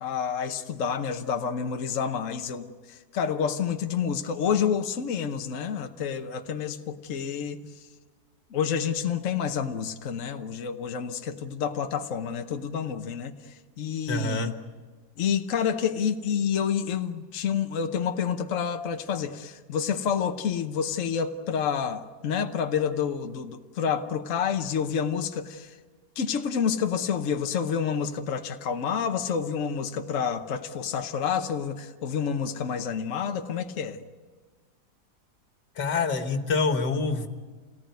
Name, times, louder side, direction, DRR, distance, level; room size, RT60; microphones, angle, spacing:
voice 1, 0.0-7.6 8.5-14.5 15.2-25.7 26.2-34.0, left 7 dB, 55° left, 6 dB, 1.3 m, -29 dB
voice 2, 14.1-14.5 35.8-37.3, left 3 dB, 80° left, 7 dB, 2.1 m, -26 dB
28.0 x 18.5 x 9.4 m, 1.4 s
omnidirectional pair, 1.8 m